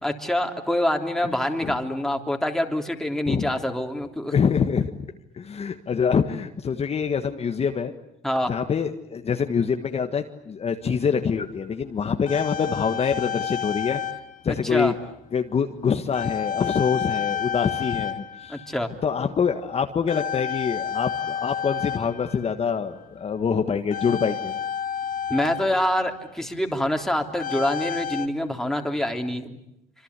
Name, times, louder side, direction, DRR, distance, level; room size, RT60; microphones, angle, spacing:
voice 1, 0.0-4.3 8.2-8.5 14.6-14.9 18.5-18.9 25.3-29.6, left 1 dB, 5° left, 4 dB, 3.4 m, -26 dB
voice 2, 4.3-4.9 5.3-7.9 8.5-14.0 14.4-14.9 15.3-18.6 19.0-24.6, left 6 dB, 35° left, 6 dB, 1.7 m, -25 dB
sound 1, 10.8-10.9 11.8-14.4 14.7-15.0 16.1-18.9 19.2-19.6 20.1-22.7 23.9-26.3 27.4-28.3, left 8 dB, 55° left, 2.0 m, -30 dB
26.0 x 26.0 x 8.4 m, 0.81 s
cardioid pair, 110°, 17 cm